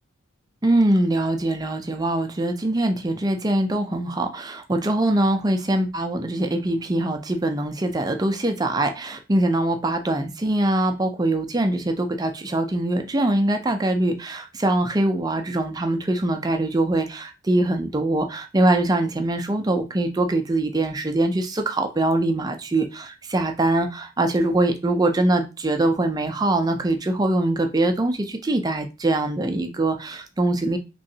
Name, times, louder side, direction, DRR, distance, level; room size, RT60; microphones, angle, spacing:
voice 1, 0.6-30.8, right 1 dB, 20° right, 0.4 m, -23 dB
3.7 x 3.1 x 2.7 m
head